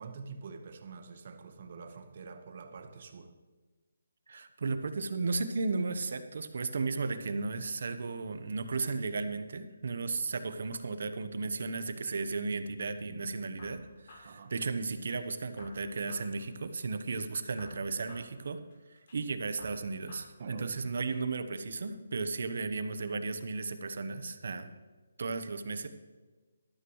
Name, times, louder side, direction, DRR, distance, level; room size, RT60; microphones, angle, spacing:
voice 1, 0.0-3.3 14.2-14.5 20.4-21.0, right 5 dB, 45° right, 7 dB, 1.2 m, -46 dB
voice 2, 4.3-18.6 19.1-24.7 25.2-25.9, right 4 dB, 60° right, 10 dB, 1.0 m, -35 dB
sound 1, 13.6-15.2 15.6-17.2 17.6-19.2 19.6-21.2, left 1 dB, 45° left, 4.1 m, -55 dB
12.5 x 12.5 x 3.2 m, 1.3 s
hypercardioid pair, 165°, 0 cm